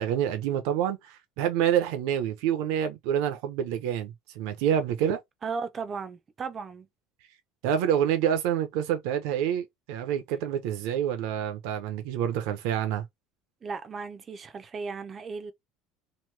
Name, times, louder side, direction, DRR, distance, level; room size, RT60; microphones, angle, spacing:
voice 1, 0.0-5.2 7.6-13.0, right 9 dB, 70° right, 0.6 m, -27 dB
voice 2, 5.4-6.9 13.6-15.5, right 5 dB, 20° right, 0.5 m, -36 dB
3.0 x 2.2 x 3.2 m
cardioid pair, 165°, 0 cm